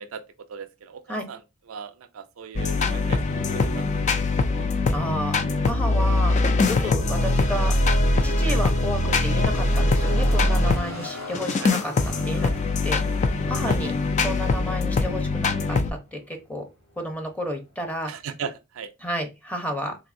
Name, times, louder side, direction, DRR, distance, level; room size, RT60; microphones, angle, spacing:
voice 1, 0.5-1.4 1.7-3.8 6.8-6.9 8.5-8.6 10.9-11.2 11.6-11.8 13.6-13.8 18.1-18.9, right 6 dB, 80° right, 0.4 m, -38 dB
sound 1, 2.6-10.8 11.3-15.9, left 2 dB, 35° left, 0.4 m, -22 dB
voice 2, 4.9-5.4 5.6-6.4 6.7-7.7 8.2-12.5 12.8-13.0 13.5-16.6 17.0-18.1 19.0-20.0, equal, 5° left, 0.7 m, -31 dB
sound 2, 6.1-18.6, left 3 dB, 65° left, 2.0 m, -42 dB
3.9 x 2.6 x 2.5 m
head